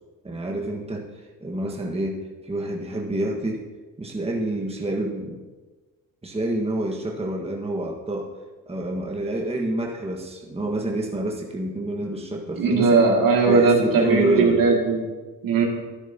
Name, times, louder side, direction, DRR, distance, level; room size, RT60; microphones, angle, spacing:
voice 1, 0.2-1.1 1.4-3.7 4.0-5.4 6.2-8.3 8.7-13.1 13.5-14.6, right 1 dB, 15° right, 0 dB, 1.6 m, -27 dB
voice 2, 12.6-15.0 15.4-15.6, right 4 dB, 60° right, -1 dB, 2.4 m, -18 dB
13.0 x 10.0 x 2.9 m, 1.3 s
supercardioid pair, 65°, 38 cm